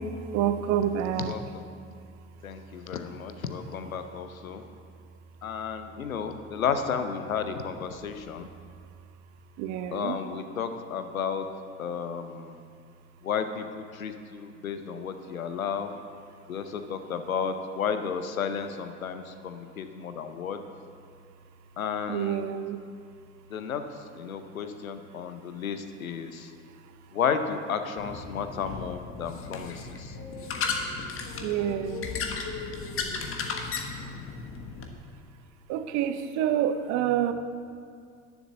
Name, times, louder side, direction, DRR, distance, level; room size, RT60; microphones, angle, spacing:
voice 1, 0.3-1.3 9.6-10.2 22.1-22.8 31.4-32.1 35.7-37.3, right 10 dB, 45° right, 10 dB, 0.8 m, -27 dB
voice 2, 2.4-4.7 5.4-8.5 9.9-11.5 11.8-12.6 13.2-15.9 16.5-20.6 21.8-22.5 23.5-26.5 27.1-30.2, left 6 dB, 80° left, 9 dB, 0.8 m, -33 dB
sound 1, 28.0-34.9, left 5 dB, 30° left, 1.3 m, -35 dB
11.0 x 7.1 x 7.5 m, 2.2 s
figure-of-eight pair, 70°, 41 cm